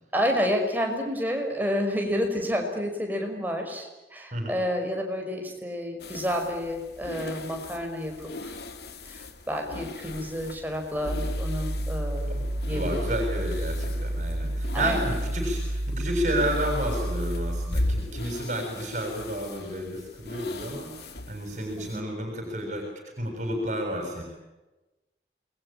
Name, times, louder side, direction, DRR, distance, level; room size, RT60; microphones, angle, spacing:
voice 1, 0.1-8.6 9.1-12.3 12.7-13.0 14.7-15.1 21.8-22.1, equal, 10° right, 2 dB, 5.5 m, -30 dB
sound 1, 6.0-22.0, left 1 dB, 65° left, 2.5 m, -38 dB
sound 2, 11.1-17.9, right 1 dB, 85° right, 1.5 m, -30 dB
voice 2, 12.7-22.9 23.2-24.2, right 1 dB, 40° right, 3 dB, 7.4 m, -31 dB
28.5 x 22.5 x 8.8 m, 1.1 s
head